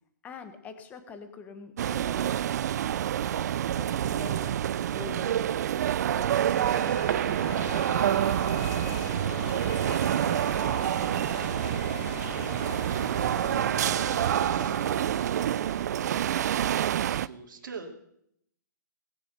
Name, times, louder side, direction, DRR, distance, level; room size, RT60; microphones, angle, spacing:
voice 1, 0.2-2.5 3.7-4.5 4.9-7.0 7.4-11.6, left 6 dB, 15° left, 8 dB, 1.2 m, -46 dB
sound 1, 1.8-17.3, right 10 dB, 55° right, 0.4 m, -27 dB
sound 2, 6.2-16.1, left 14 dB, 35° left, 0.4 m, -42 dB
voice 2, 16.9-18.0, right 4 dB, 80° right, 2 dB, 2.8 m, -45 dB
19.0 x 7.1 x 6.7 m, 0.73 s
hypercardioid pair, 160°, 11 cm